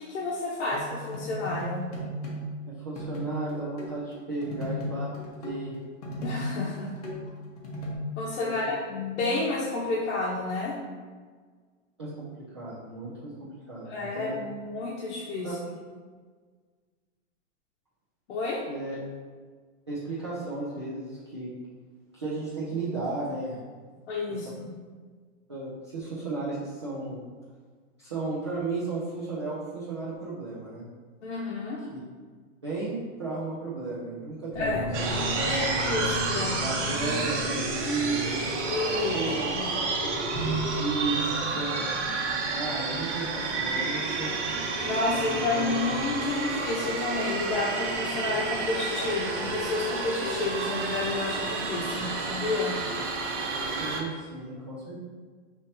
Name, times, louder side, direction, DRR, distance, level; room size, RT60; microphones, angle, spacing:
voice 1, 0.0-1.8 6.2-6.9 8.2-10.8 13.9-15.5 18.3-18.6 24.1-24.7 31.2-31.8 34.5-34.9 35.4-36.6 38.7-39.2 39.5-39.7 44.8-52.8, left 3 dB, 70° left, -5 dB, 0.9 m, -30 dB
sound 1, 0.7-2.6 3.0-8.0, equal, 30° left, 0.7 m, -36 dB
voice 2, 2.7-5.1 5.4-5.7 8.4-8.8 12.0-12.3 12.5-14.4 15.4-15.6 18.7-19.0 19.9-21.5 22.1-23.6 25.5-27.2 28.0-30.8 31.9-32.0 32.6-35.1 35.4-36.1 36.6-38.4 38.9-41.8 42.5-44.4 45.1-46.0 53.8-55.0, right 2 dB, 25° right, -9 dB, 0.3 m, -34 dB
sound 2, 34.5-45.7, right 1 dB, 5° left, 1.0 m, -37 dB
sound 3, 34.9-54.0, right 3 dB, 65° right, 0.9 m, -30 dB
5.4 x 3.2 x 2.8 m, 1.5 s
supercardioid pair, 175°, 38 cm